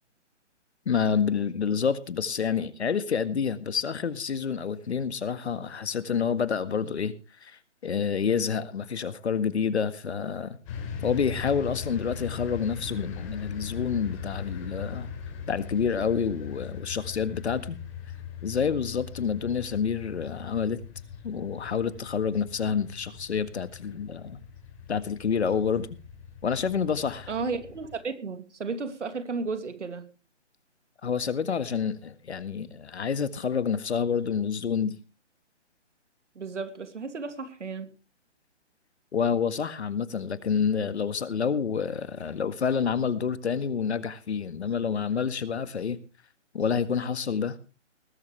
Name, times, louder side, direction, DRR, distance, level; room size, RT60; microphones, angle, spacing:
voice 1, 0.9-7.1 7.4-10.6 11.0-15.1 15.5-17.8 18.4-20.8 21.2-24.4 24.9-25.9 26.4-27.3 31.0-35.0 39.1-46.0 46.5-47.6, left 6 dB, 65° left, 1.8 m, -28 dB
sound 1, 10.7-28.0, left 7 dB, 25° left, 6.2 m, -40 dB
voice 2, 27.3-30.1 36.4-37.9, right 4 dB, 75° right, 2.7 m, -33 dB
19.5 x 12.5 x 3.4 m
hypercardioid pair, 165°, 36 cm